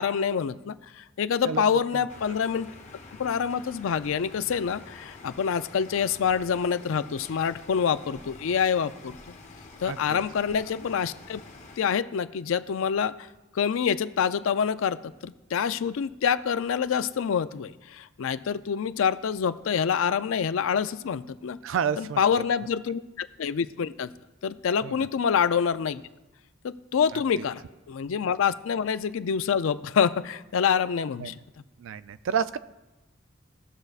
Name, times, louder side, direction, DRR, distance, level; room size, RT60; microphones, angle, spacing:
voice 1, 0.0-2.7 3.2-9.2 9.8-11.4 11.8-13.1 13.5-21.6 22.0-24.1 24.4-26.0 26.6-27.6 27.9-31.4, left 7 dB, 70° left, 14 dB, 0.4 m, -26 dB
sound 1, 2.1-11.8, left 3 dB, 35° left, 0.9 m, -47 dB
voice 2, 9.9-10.2 21.6-22.4 24.8-25.1 27.1-27.2 31.2-31.3 31.8-32.6, right 7 dB, 65° right, 15 dB, 0.3 m, -30 dB
19.0 x 6.5 x 2.4 m, 1.1 s
head